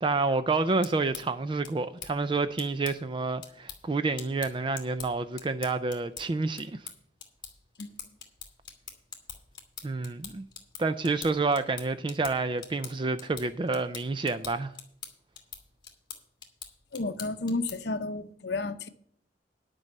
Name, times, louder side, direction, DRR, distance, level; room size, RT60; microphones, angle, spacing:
voice 1, 0.0-6.9 9.8-10.5 10.8-14.7, right 3 dB, 25° right, 0.4 m, -29 dB
sound 1, 0.6-18.0, left 7 dB, 25° left, 1.7 m, -46 dB
voice 2, 16.9-18.9, left 3 dB, 60° left, 0.7 m, -32 dB
10.5 x 5.4 x 8.1 m
head